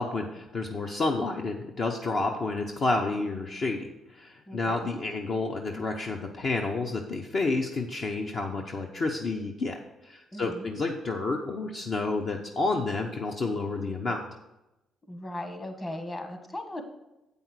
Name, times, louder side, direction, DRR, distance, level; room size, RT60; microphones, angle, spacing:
voice 1, 0.0-9.8 10.0-14.2, left 3 dB, 50° left, 2 dB, 0.8 m, -30 dB
voice 2, 10.3-10.7 15.1-16.8, left 1 dB, 25° left, 5 dB, 1.5 m, -37 dB
8.1 x 5.4 x 6.2 m, 0.95 s
cardioid pair, 90°, 0 cm